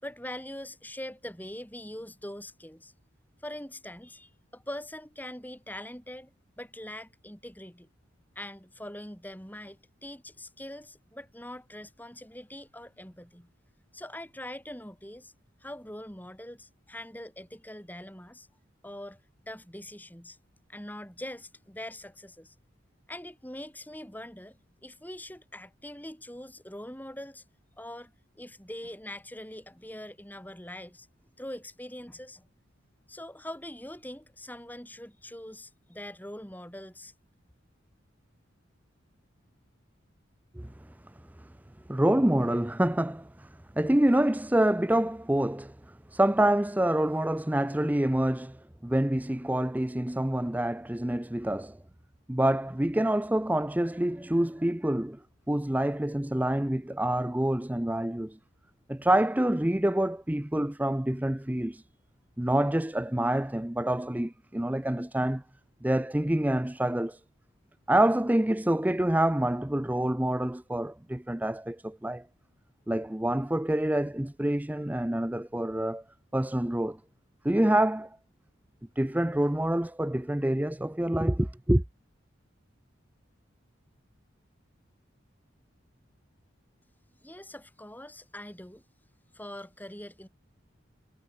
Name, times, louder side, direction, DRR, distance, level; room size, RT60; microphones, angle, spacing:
voice 1, 0.0-2.9 3.4-6.3 6.6-7.9 8.4-13.5 13.9-15.3 15.6-18.5 18.8-19.2 19.5-20.4 20.7-22.5 23.1-27.4 27.8-31.1 31.4-32.5 33.1-37.1 87.2-88.8 89.3-90.3, left 1 dB, 10° left, 6.1 m, -43 dB
voice 2, 41.9-43.5 43.8-51.8 52.3-55.2 55.5-58.4 58.9-61.8 62.4-65.4 65.8-67.2 67.9-72.2 72.9-76.0 76.3-77.0 77.4-78.2 79.0-81.8, right 1 dB, 10° right, 0.5 m, -27 dB
head